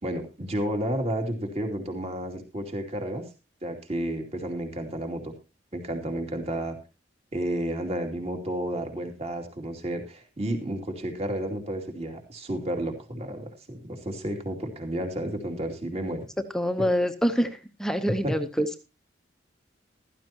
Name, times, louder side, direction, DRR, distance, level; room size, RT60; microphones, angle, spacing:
voice 1, 0.0-3.2 3.6-5.3 5.7-6.8 7.3-16.3 16.8-16.9 18.2-18.3, right 1 dB, 35° right, 4 dB, 2.7 m, -31 dB
voice 2, 16.5-17.5 17.8-18.7, equal, 5° left, 8 dB, 0.9 m, -25 dB
15.0 x 13.5 x 2.9 m, 0.28 s
head